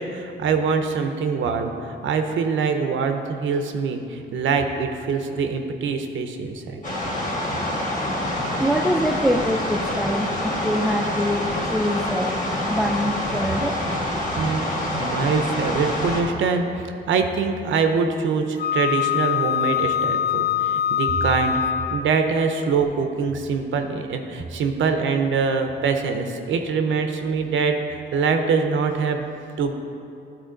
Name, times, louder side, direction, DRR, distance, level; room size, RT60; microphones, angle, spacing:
voice 1, 0.0-6.8 14.4-21.6 21.9-29.2 29.6-29.7, right 5 dB, 90° right, 6 dB, 0.7 m, -24 dB
sound 1, 6.8-16.2, left 1 dB, 45° left, 1.4 m, -26 dB
voice 2, 8.4-12.4 12.7-13.8, equal, ahead, 5 dB, 0.4 m, -24 dB
Wind instrument woodwind instrument, 18.6-22.2, left 9 dB, 60° left, 0.4 m, -23 dB
12.0 x 4.4 x 3.8 m, 2.7 s
cardioid pair, 125°, 19 cm